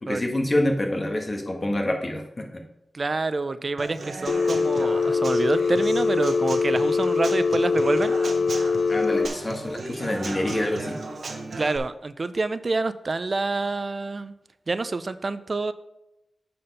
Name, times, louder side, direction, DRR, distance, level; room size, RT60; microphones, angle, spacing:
voice 1, 0.0-2.6 8.9-10.9, left 1 dB, 35° left, 2 dB, 1.4 m, -26 dB
voice 2, 2.9-8.1 11.6-14.3 14.7-15.7, right 3 dB, 45° right, 13 dB, 0.4 m, -27 dB
Human voice / Acoustic guitar / Drum, 3.8-11.8, right 3 dB, 70° right, 0.9 m, -36 dB
Telephone, 4.3-9.3, left 4 dB, 90° left, 0.5 m, -23 dB
8.7 x 4.3 x 5.4 m, 0.89 s
wide cardioid pair, 70°, 0 cm